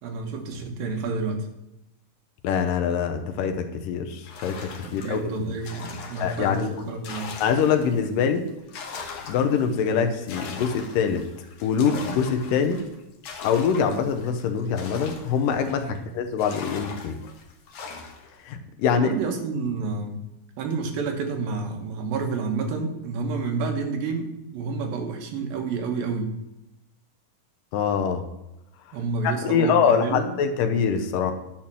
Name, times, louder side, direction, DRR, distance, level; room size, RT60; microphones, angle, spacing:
voice 1, 0.0-1.5 4.8-7.3 15.9-16.0 18.9-20.2 20.6-26.3 28.9-30.2, right 4 dB, 85° right, 4 dB, 3.1 m, -29 dB
voice 2, 2.4-5.2 6.2-6.8 7.4-8.5 9.3-11.2 11.6-12.8 13.4-17.2 18.4-19.2 27.7-28.2 29.2-31.3, left 7 dB, 80° left, 6 dB, 2.4 m, -24 dB
sound 1, 4.2-8.1 8.5-16.0 16.4-18.3, left 5 dB, 60° left, 1.6 m, -40 dB
10.5 x 4.4 x 7.5 m, 0.94 s
omnidirectional pair, 4.0 m